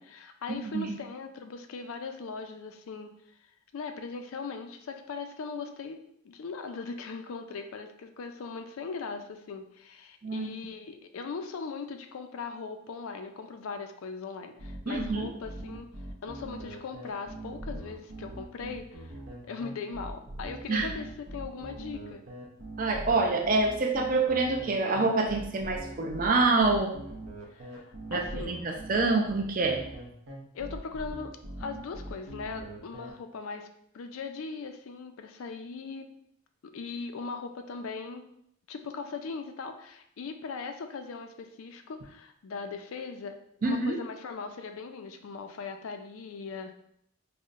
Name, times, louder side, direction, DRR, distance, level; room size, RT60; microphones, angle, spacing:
voice 1, 0.0-3.1 3.7-6.0 6.2-15.9 16.2-19.1 19.4-22.2 27.5-28.6 30.5-31.3 31.6-33.7 33.9-36.1 36.7-38.2 38.7-43.4 43.6-46.7, left 4 dB, 70° left, 7 dB, 0.4 m, -39 dB
sound 1, 14.6-33.1, right 1 dB, 70° right, 0.7 m, -42 dB
voice 2, 14.9-15.3 20.7-20.9 22.8-26.9 28.1-29.8 43.6-44.0, right 3 dB, 40° right, 1 dB, 0.4 m, -26 dB
5.4 x 2.1 x 2.4 m, 0.72 s
head